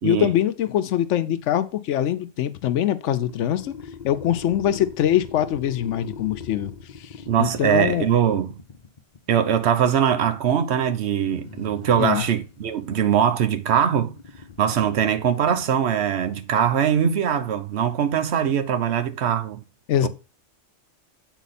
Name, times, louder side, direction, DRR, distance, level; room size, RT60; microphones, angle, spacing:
voice 1, 0.0-3.7 4.0-6.7 7.0-7.1 7.4-8.1 12.0-12.3 19.9-20.1, left 11 dB, 85° left, 0.9 m, -23 dB
sound 1, 3.2-9.3 11.1-16.4, left 5 dB, 45° left, 0.8 m, -42 dB
voice 2, 7.3-8.5 9.3-14.2 14.6-19.6 20.0-20.1, right 8 dB, 65° right, 1.0 m, -22 dB
8.1 x 4.1 x 4.1 m
omnidirectional pair, 1.2 m